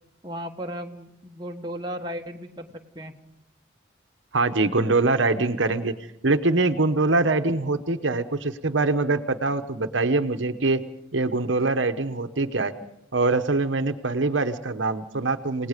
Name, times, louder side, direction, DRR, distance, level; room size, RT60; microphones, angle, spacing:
voice 1, 0.2-3.1, equal, 20° right, 2 dB, 1.4 m, -35 dB
voice 2, 4.3-5.9 6.2-10.8 11.1-12.7 13.1-15.7, right 3 dB, 80° right, 8 dB, 1.1 m, -23 dB
29.0 x 18.5 x 5.2 m, 0.77 s
head